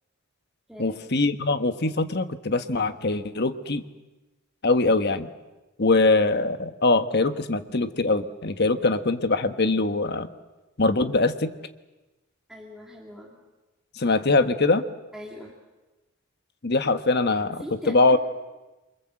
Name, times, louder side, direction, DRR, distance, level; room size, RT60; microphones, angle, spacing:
voice 1, 0.8-3.8 4.6-5.3 5.8-10.3 10.8-11.5 14.0-14.8 16.6-18.2, left 3 dB, 45° left, 9 dB, 1.2 m, -22 dB
voice 2, 12.5-13.4 15.1-15.6 17.5-18.2, equal, 5° right, -2 dB, 2.5 m, -41 dB
28.0 x 24.0 x 7.7 m, 1.1 s
head